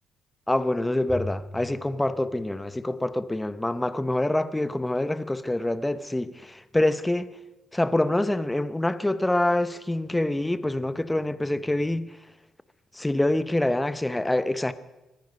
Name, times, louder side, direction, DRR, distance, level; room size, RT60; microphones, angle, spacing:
voice 1, 0.5-7.3 7.7-12.2 12.9-14.7, left 1 dB, 10° left, 0.8 m, -26 dB
Bowed string instrument, 1.1-3.5, left 1 dB, 5° right, 2.7 m, -41 dB
24.5 x 10.0 x 5.4 m
cardioid pair, 90°, 0 cm